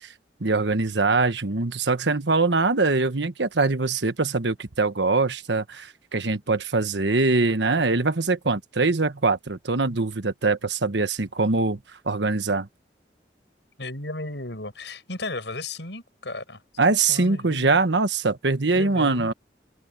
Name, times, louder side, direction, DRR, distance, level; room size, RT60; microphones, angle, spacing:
voice 1, 0.4-11.8 12.0-12.7 16.8-19.3, right 3 dB, 80° right, 1.3 m, -23 dB
voice 2, 13.8-17.7 18.7-19.3, left 2 dB, 80° left, 6.9 m, -35 dB
open air
head